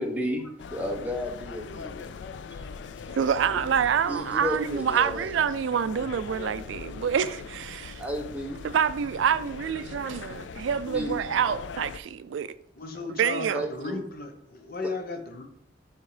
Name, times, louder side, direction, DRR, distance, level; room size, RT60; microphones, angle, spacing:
voice 1, 0.0-2.1 4.1-5.3 8.0-8.6 10.9-11.2 13.5-14.0, equal, 10° right, 1.0 m, -32 dB
sound 1, 0.6-12.0, left 5 dB, 70° left, 0.4 m, -40 dB
voice 2, 3.2-8.0 8.6-12.5 13.2-13.6, right 7 dB, 75° right, 0.3 m, -27 dB
voice 3, 12.8-15.4, left 3 dB, 50° left, 0.9 m, -35 dB
7.2 x 3.5 x 4.9 m
head